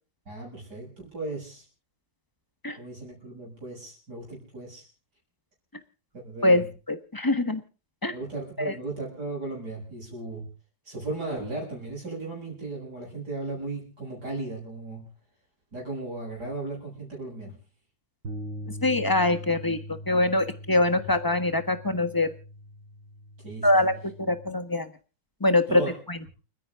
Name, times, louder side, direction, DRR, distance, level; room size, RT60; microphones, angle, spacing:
voice 1, 0.3-1.6 2.8-4.9 6.1-6.6 8.1-10.5 10.8-15.0 15.7-17.6 21.0-21.1 23.4-23.9 25.7-25.9, right 2 dB, 55° right, -1 dB, 8.5 m, -36 dB
voice 2, 6.4-7.6 8.0-8.1 8.6-8.7 18.8-22.3 23.6-24.9 25.4-25.8 26.1-26.3, left 2 dB, 15° left, 10 dB, 1.1 m, -24 dB
sound 1, 18.2-24.5, equal, 75° right, 4.7 m, -41 dB
30.0 x 10.5 x 3.7 m, 0.36 s
omnidirectional pair, 2.0 m